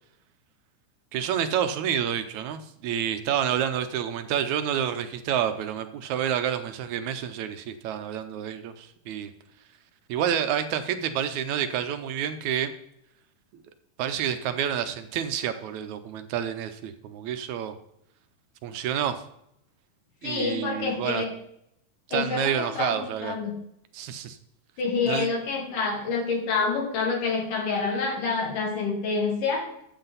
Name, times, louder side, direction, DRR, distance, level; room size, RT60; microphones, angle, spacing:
voice 1, 1.1-9.3 10.1-12.7 13.5-13.6 14.0-17.8 18.6-19.2 20.2-21.2 22.1-23.4 23.9-24.4 25.1-25.3, right 9 dB, 75° right, 9 dB, 2.0 m, -29 dB
voice 2, 20.2-21.3 22.1-23.5 24.8-29.7, left 4 dB, 85° left, 0 dB, 4.1 m, -27 dB
13.0 x 7.8 x 4.0 m, 0.76 s
omnidirectional pair, 3.6 m